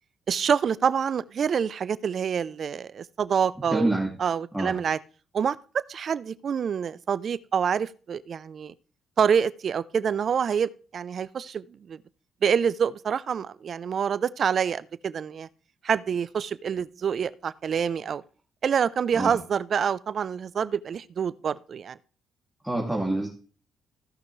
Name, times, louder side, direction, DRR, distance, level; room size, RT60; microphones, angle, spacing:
voice 1, 0.3-3.9 4.2-5.0 5.3-8.7 9.2-12.0 12.4-15.5 15.8-18.2 18.6-22.0, right 7 dB, 55° right, 0.6 m, -26 dB
voice 2, 3.7-4.1 4.5-4.7 19.2-19.4 22.6-23.3, right 1 dB, 5° right, 2.5 m, -26 dB
16.0 x 5.9 x 3.2 m
cardioid pair, 90°, 0 cm